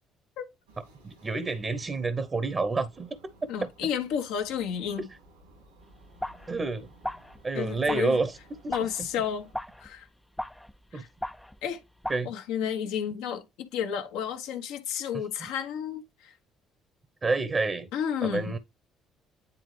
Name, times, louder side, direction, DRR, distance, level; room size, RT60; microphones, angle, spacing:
sound 1, 0.7-9.5, right 1 dB, 90° right, 3.2 m, -57 dB
voice 1, 1.0-3.2 3.6-3.7 6.5-6.9 7.4-8.4 8.6-9.1 10.9-11.0 12.1-12.3 15.4-15.5 17.2-17.9 18.2-18.6, right 3 dB, 35° right, 0.9 m, -29 dB
voice 2, 3.5-5.1 7.5-8.2 8.7-9.5 9.8-10.1 10.9-11.1 11.6-11.8 12.2-16.3 17.9-18.5, left 8 dB, 70° left, 1.2 m, -31 dB
sound 2, 5.9-12.2, left 1 dB, 5° left, 0.5 m, -39 dB
9.7 x 3.6 x 3.3 m
hypercardioid pair, 50°, 0 cm